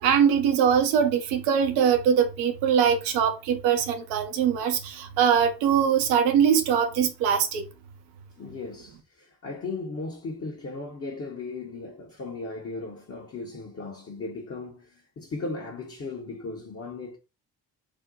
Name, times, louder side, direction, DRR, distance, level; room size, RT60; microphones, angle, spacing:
voice 1, 0.0-7.6, right 8 dB, 75° right, 0.7 m, -22 dB
voice 2, 8.4-17.2, left 3 dB, 30° left, 0.8 m, -37 dB
2.6 x 2.1 x 3.8 m
figure-of-eight pair, 40°, 45 cm